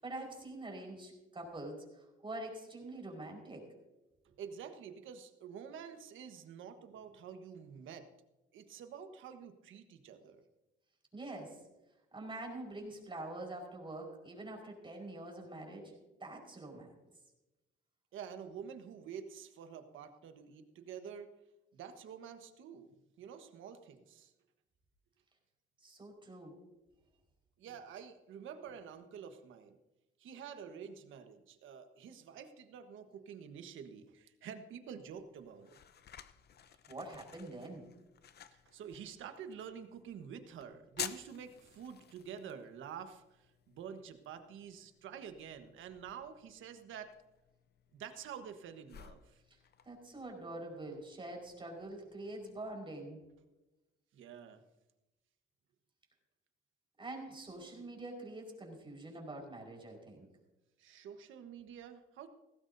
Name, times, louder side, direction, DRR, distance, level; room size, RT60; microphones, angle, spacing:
voice 1, 0.0-3.7 11.1-11.6 12.1-16.9 25.8-26.5 36.9-37.8 49.8-53.2 57.0-60.3, right 2 dB, 25° right, 0 dB, 5.0 m, -45 dB
voice 2, 4.2-8.1 8.5-10.4 18.1-21.3 21.7-24.3 27.6-29.8 30.2-35.8 38.5-47.1 47.9-49.4 54.1-54.6 60.8-62.3, right 7 dB, 80° right, 8 dB, 1.4 m, -48 dB
sound 1, 35.0-52.5, left 9 dB, 55° left, 0.8 m, -53 dB
17.5 x 15.5 x 2.7 m, 1.0 s
cardioid pair, 90°, 20 cm